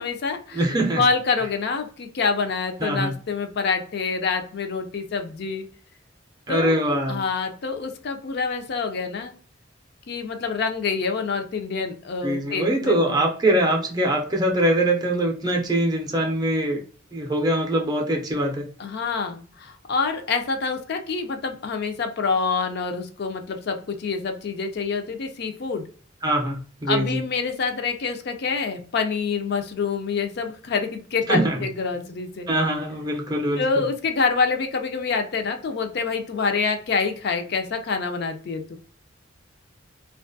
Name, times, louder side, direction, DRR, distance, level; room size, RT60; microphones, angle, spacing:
voice 1, 0.0-0.6 1.0-5.7 6.5-6.7 7.1-9.3 10.1-13.3 18.8-25.8 26.9-32.5 33.6-38.8, left 4 dB, 55° left, 6 dB, 0.4 m, -26 dB
voice 2, 0.5-1.0 2.8-3.1 6.5-7.2 12.2-16.8 17.1-18.7 26.2-27.2 31.3-31.6 32.5-33.8, right 1 dB, 20° right, 1 dB, 0.5 m, -23 dB
2.5 x 2.3 x 2.5 m, 0.42 s
head